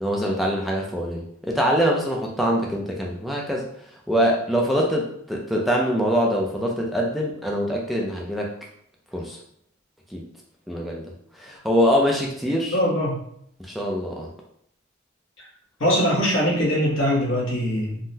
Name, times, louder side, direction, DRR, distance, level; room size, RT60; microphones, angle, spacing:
voice 1, 0.0-3.7 4.1-8.5 9.1-9.4 10.1-10.3 10.7-11.1 11.4-12.8 13.6-14.3, equal, ahead, -2 dB, 0.3 m, -24 dB
voice 2, 12.7-13.2 15.4-15.5 15.8-18.0, equal, 75° left, -3 dB, 1.0 m, -22 dB
3.6 x 2.0 x 2.7 m, 0.69 s
head